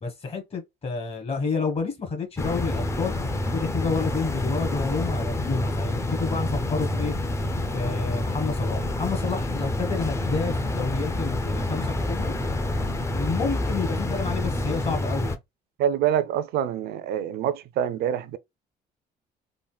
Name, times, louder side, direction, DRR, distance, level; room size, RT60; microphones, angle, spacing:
voice 1, 0.0-3.1 3.5-7.2 7.7-12.3 13.1-15.4, left 4 dB, 35° left, 1.2 m, -29 dB
sound 1, 2.4-15.4, left 1 dB, 15° left, 0.4 m, -27 dB
voice 2, 15.8-18.4, right 10 dB, 70° right, 0.4 m, -26 dB
3.7 x 2.1 x 2.3 m
cardioid pair, 110°, 17 cm